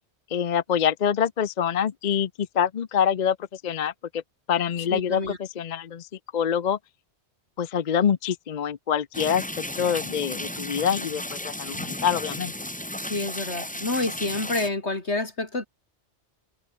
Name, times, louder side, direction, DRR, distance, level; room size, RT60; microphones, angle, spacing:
voice 1, 0.3-2.3 2.5-3.4 3.6-4.2 4.5-6.1 6.3-6.8 7.6-9.4 9.8-12.5, left 8 dB, 50° left, 0.7 m, -25 dB
voice 2, 4.9-5.4 13.0-15.7, left 2 dB, 80° left, 4.3 m, -28 dB
sound 1, 9.1-14.7, left 1 dB, 5° left, 1.2 m, -34 dB
omnidirectional pair, 1.1 m